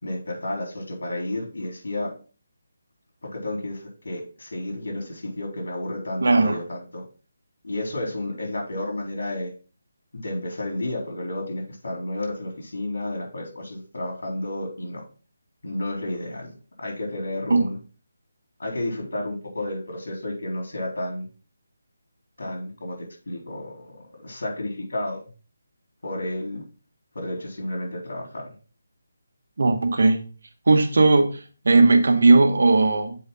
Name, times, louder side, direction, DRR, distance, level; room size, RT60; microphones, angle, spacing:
voice 1, 0.0-2.1 3.2-7.0 7.6-9.5 10.1-15.0 15.6-17.8 18.6-21.3 22.4-23.9 24.2-25.2 26.0-26.6 27.1-28.5, left 1 dB, 80° left, 3.8 m, -31 dB
voice 2, 6.2-6.6 17.5-17.6 29.6-30.2 30.7-31.3 31.6-33.2, right 3 dB, 65° right, 1.3 m, -17 dB
7.7 x 5.0 x 3.8 m
hypercardioid pair, 175°, 0 cm